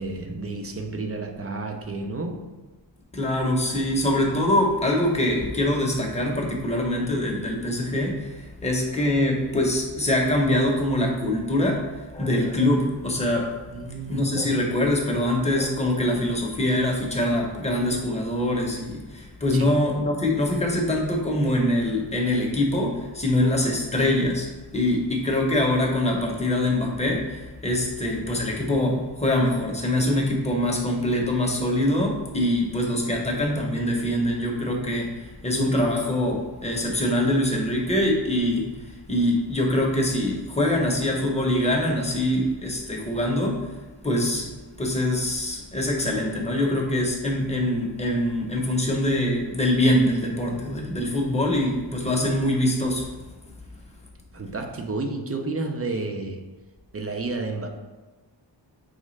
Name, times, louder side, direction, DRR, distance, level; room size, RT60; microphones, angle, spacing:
voice 1, 0.0-2.5 13.7-14.3 19.5-19.7 54.3-56.4 56.9-57.7, right 3 dB, 35° right, 4 dB, 0.5 m, -31 dB
voice 2, 3.1-13.6 14.1-43.7 44.0-44.5 44.8-53.1, left 1 dB, 15° left, -1 dB, 0.8 m, -24 dB
4.9 x 3.2 x 3.1 m, 1.2 s
wide cardioid pair, 135°, 43 cm